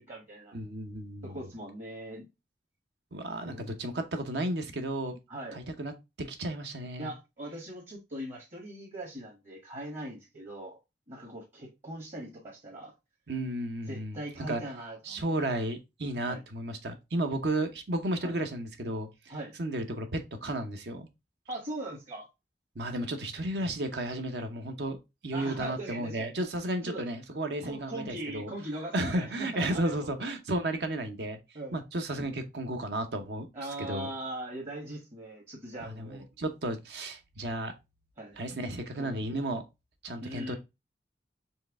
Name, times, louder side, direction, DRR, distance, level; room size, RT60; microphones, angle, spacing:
voice 1, 0.0-0.6 1.2-2.3 3.4-3.6 5.3-5.6 7.0-10.8 11.1-12.9 13.9-15.4 16.2-16.4 18.2-18.4 19.3-19.5 21.5-22.2 25.3-26.3 26.8-27.1 27.6-30.1 31.5-31.8 33.5-36.2 38.2-38.4 39.0-39.3 40.2-40.6, right 1 dB, 45° right, 1.3 m, -40 dB
voice 2, 0.5-1.4 3.1-5.2 5.5-5.9 6.2-7.1 13.3-14.2 14.5-14.6 15.0-19.3 19.6-21.1 22.8-25.0 25.2-28.5 28.9-31.4 31.7-33.5 33.8-34.1 36.0-37.7 38.4-39.6 40.0-40.6, right 1 dB, 70° right, 0.8 m, -33 dB
4.5 x 3.2 x 3.5 m
head